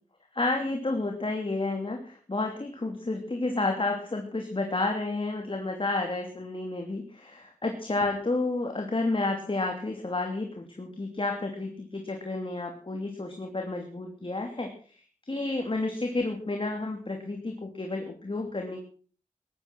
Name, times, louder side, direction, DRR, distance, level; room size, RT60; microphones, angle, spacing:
voice 1, 0.3-18.8, left 2 dB, 40° left, 3 dB, 2.9 m, -31 dB
16.5 x 11.0 x 6.2 m, 0.43 s
cardioid pair, 55°, 14 cm